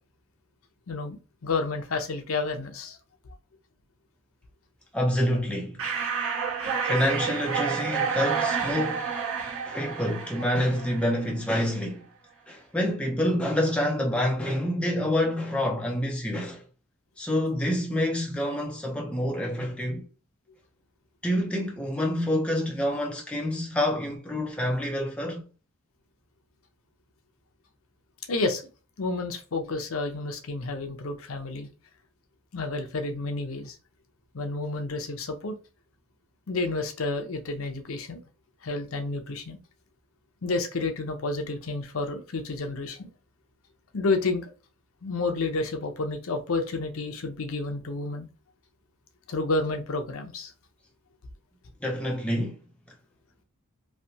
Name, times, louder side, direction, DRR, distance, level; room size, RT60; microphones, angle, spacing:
voice 1, 0.9-3.0 28.3-28.6 29.0-31.7 32.5-33.8 34.3-35.6 36.5-38.2 38.6-39.6 40.4-43.1 43.9-44.5 45.0-48.3 49.3-50.5, left 3 dB, 65° left, 0.6 m, -30 dB
voice 2, 4.9-5.8 6.8-9.1 9.6-12.1 12.5-16.6 17.2-20.1 21.2-25.4 51.8-52.6, left 1 dB, 5° left, 0.6 m, -27 dB
sound 1, 5.8-11.3, right 6 dB, 60° right, 1.4 m, -29 dB
3.2 x 2.6 x 2.8 m
head